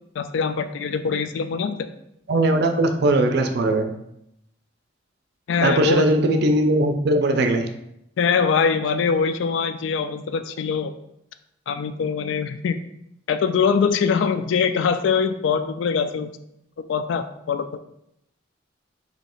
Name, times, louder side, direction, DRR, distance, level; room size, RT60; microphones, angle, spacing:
voice 1, 0.2-1.8 5.5-6.1 8.2-10.9 11.7-12.8 13.3-16.3 16.9-17.8, left 6 dB, 70° left, 10 dB, 0.3 m, -23 dB
voice 2, 2.3-3.9 5.6-7.7, right 1 dB, 60° right, 6 dB, 0.4 m, -19 dB
3.1 x 2.8 x 4.3 m, 0.79 s
head